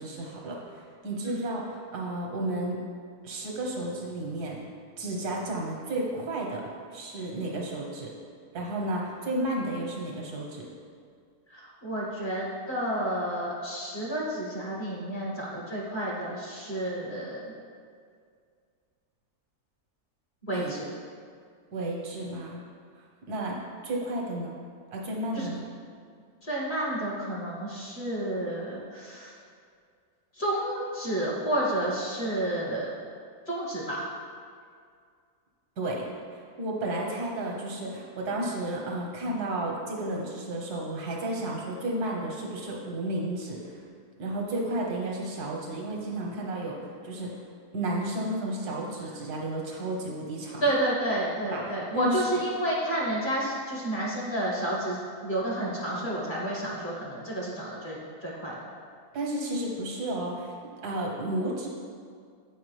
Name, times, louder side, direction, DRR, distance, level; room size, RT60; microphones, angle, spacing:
voice 1, 0.0-2.8 3.2-4.6 5.0-6.6 6.9-8.1 8.5-10.7 20.5-20.7 21.7-22.6 23.3-23.6 23.8-24.6 24.9-25.6 35.8-43.8 44.2-47.3 47.7-50.7 51.5-52.2 59.1-60.5 60.8-61.7, right 1 dB, 85° right, -2 dB, 1.6 m, -32 dB
voice 2, 11.5-17.5 20.4-20.9 25.3-25.5 26.4-29.3 30.3-32.9 33.5-34.1 50.6-58.6, right 1 dB, 35° left, -5 dB, 1.3 m, -30 dB
8.0 x 4.7 x 3.3 m, 2.1 s
omnidirectional pair, 1.6 m